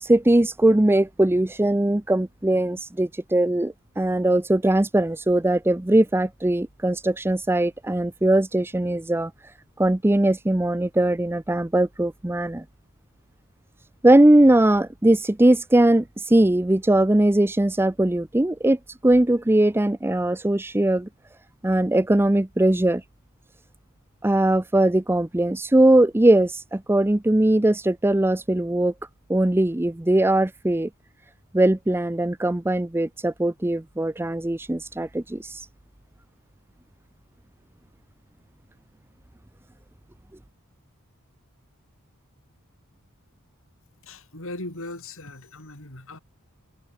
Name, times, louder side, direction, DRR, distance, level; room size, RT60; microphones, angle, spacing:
voice 1, 0.0-9.3 9.8-12.6 14.0-21.1 21.6-23.0 24.2-28.9 29.3-30.9 31.5-35.6, right 1 dB, 10° right, 0.5 m, -20 dB
voice 2, 44.0-46.2, left 2 dB, 65° left, 7.4 m, -38 dB
head